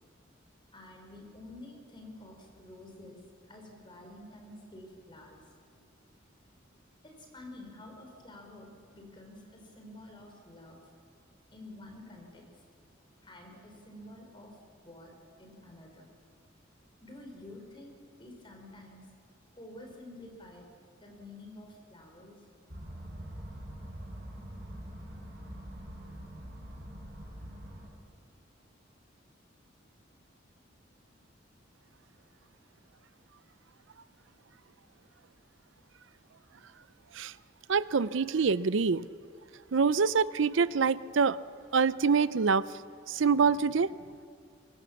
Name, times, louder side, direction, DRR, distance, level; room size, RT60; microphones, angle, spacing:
voice 1, 0.7-5.5 7.0-10.8 11.5-12.4 13.2-14.6 14.8-15.1 15.4-16.1 17.0-19.1 19.6-20.7 21.0-22.3, left 1 dB, 25° left, 2 dB, 4.3 m, -49 dB
sound 1, 22.7-27.9, equal, 55° right, 6.3 m, -44 dB
voice 2, 37.7-39.1 39.7-41.4 41.7-42.6 43.1-43.9, right 5 dB, 75° right, 17 dB, 0.5 m, -25 dB
23.5 x 23.5 x 7.1 m, 2.2 s
head